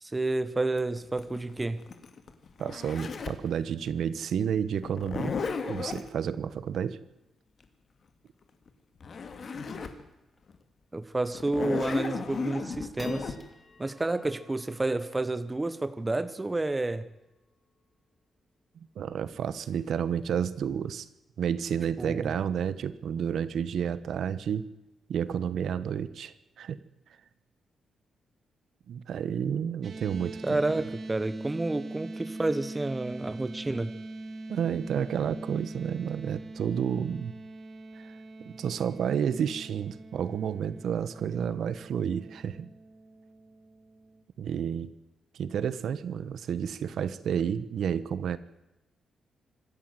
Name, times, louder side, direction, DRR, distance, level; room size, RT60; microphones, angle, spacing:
voice 1, 0.0-1.8 10.9-13.4 13.8-17.1 22.0-22.3 30.4-33.9, right 2 dB, 15° right, 13 dB, 1.0 m, -30 dB
Zipper (clothing), 0.8-3.5 4.8-6.1 8.7-8.8 9.0-10.0 10.5-10.6 11.3-13.3, left 5 dB, 40° left, 2.1 m, -35 dB
voice 2, 2.6-5.3 5.7-7.0 19.0-21.1 21.4-24.6 25.1-26.8 28.9-30.6 34.5-37.3 38.0-38.1 38.4-42.7 44.4-44.9 45.3-48.4, right 8 dB, 65° right, 15 dB, 1.1 m, -30 dB
sound 1, 10.3-10.6 11.1-11.2 11.7-12.1 12.5-19.1, left 2 dB, 15° left, 2.9 m, -55 dB
sound 2, 29.8-44.2, right 2 dB, 45° right, 2.1 m, -43 dB
25.5 x 13.5 x 7.9 m, 0.96 s
wide cardioid pair, 160°, 0 cm